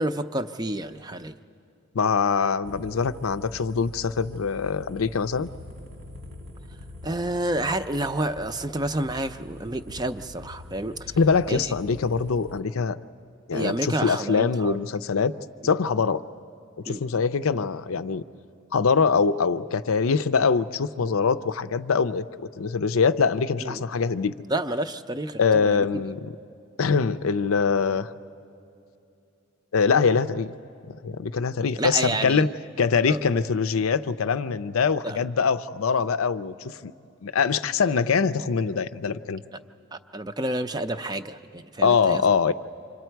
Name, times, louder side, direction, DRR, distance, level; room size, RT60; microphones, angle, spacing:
voice 1, 0.0-1.3 7.0-11.2 11.5-11.7 13.5-14.8 16.9-17.0 23.6-23.8 24.5-25.8 31.8-32.5 33.1-33.2 35.0-35.2 39.9-42.2, right 1 dB, 20° right, 9 dB, 0.5 m, -29 dB
voice 2, 1.9-5.5 11.2-13.0 13.5-15.3 15.6-16.2 16.8-18.2 18.7-22.2 22.6-24.3 25.4-26.3 26.8-28.1 29.7-30.5 30.9-32.5 32.8-36.9 37.2-39.4 41.8-42.5, left 5 dB, 75° left, 12 dB, 0.5 m, -23 dB
sound 1, 2.6-12.6, left 1 dB, 85° right, 2.0 m, -44 dB
29.0 x 26.0 x 4.6 m, 2.7 s
head